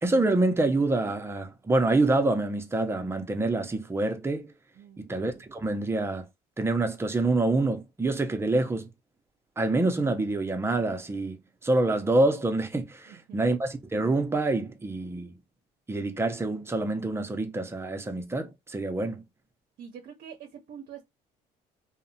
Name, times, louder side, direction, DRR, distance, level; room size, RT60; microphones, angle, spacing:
voice 1, 0.0-4.5 5.0-6.2 6.6-8.9 9.6-11.4 11.6-15.3 15.9-19.2, right 2 dB, 15° right, 0.5 m, -26 dB
voice 2, 4.8-5.1 13.1-13.4 19.8-21.0, right 8 dB, 60° right, 0.6 m, -45 dB
2.7 x 2.0 x 2.6 m
cardioid pair, 110°, 17 cm